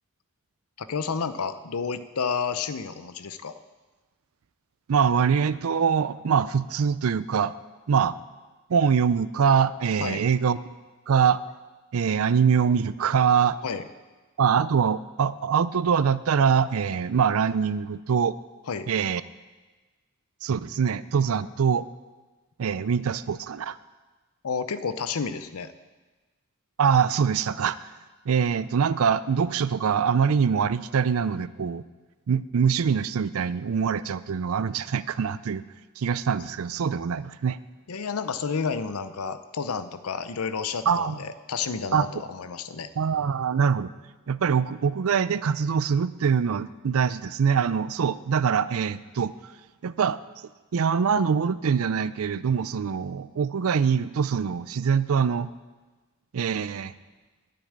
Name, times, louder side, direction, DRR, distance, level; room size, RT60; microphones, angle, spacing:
voice 1, 0.8-3.5 10.0-10.2 13.6-13.8 18.7-18.9 24.4-25.7 37.9-42.9, left 5 dB, 75° left, 13 dB, 0.6 m, -30 dB
voice 2, 4.9-7.5 7.9-8.1 8.7-10.6 11.1-11.4 11.9-13.6 14.4-18.4 18.9-19.2 20.4-21.9 22.6-23.8 26.8-27.8 28.3-31.8 32.3-35.6 36.0-37.6 40.9-41.2 41.9-42.1 43.0-43.9 44.3-49.5 49.8-50.2 50.7-55.5 56.3-56.9, right 6 dB, 70° right, 17 dB, 0.4 m, -24 dB
9.6 x 6.9 x 8.7 m, 1.3 s
head